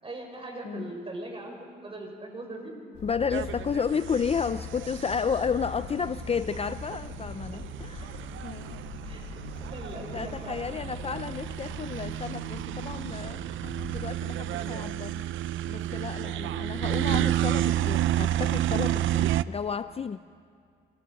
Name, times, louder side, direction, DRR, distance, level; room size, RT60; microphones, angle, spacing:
voice 1, 0.0-2.8 9.0-11.2 14.5-14.8 16.4-16.8, right 2 dB, 30° right, 2 dB, 6.5 m, -41 dB
sound 1, 2.9-14.0, left 5 dB, 65° left, 6.4 m, -42 dB
voice 2, 3.0-8.2 8.4-8.8 10.0-13.4 13.9-15.2 15.7-20.2, left 6 dB, 30° left, 13 dB, 0.5 m, -32 dB
sound 2, 3.3-19.4, right 12 dB, 80° right, 0.6 m, -31 dB
27.5 x 26.5 x 5.8 m, 2.3 s
cardioid pair, 90°, 20 cm